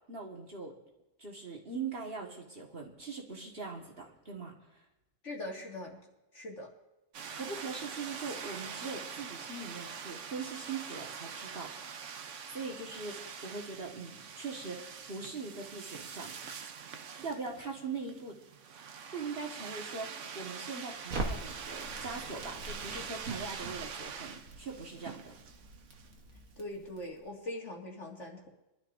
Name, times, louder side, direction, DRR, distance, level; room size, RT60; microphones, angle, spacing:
voice 1, 0.1-0.7 1.2-4.5 7.3-11.7 12.5-16.3 17.2-18.4 19.1-25.4, right 4 dB, 45° right, -1 dB, 1.9 m, -41 dB
voice 2, 5.2-6.0 6.3-6.7 26.6-28.5, left 1 dB, 60° left, -1 dB, 2.5 m, -41 dB
sound 1, 7.1-26.1, right 6 dB, 65° right, 1.1 m, -44 dB
Crackle, 21.1-27.2, right 2 dB, 80° right, 1.8 m, -43 dB
22.5 x 12.0 x 2.7 m, 0.97 s
omnidirectional pair, 1.4 m